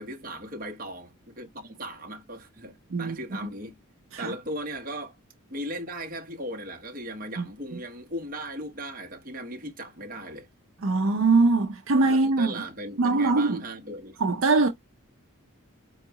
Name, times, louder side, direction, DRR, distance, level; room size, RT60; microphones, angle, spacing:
voice 1, 0.0-3.8 4.2-5.2 5.5-10.5 12.0-14.2, right 1 dB, 40° right, 0.9 m, -37 dB
voice 2, 2.9-3.5 4.1-4.3 7.4-7.5 7.7-7.8 10.8-12.5 13.0-13.6 14.2-14.7, right 3 dB, 65° right, 0.6 m, -22 dB
4.5 x 2.3 x 2.9 m
head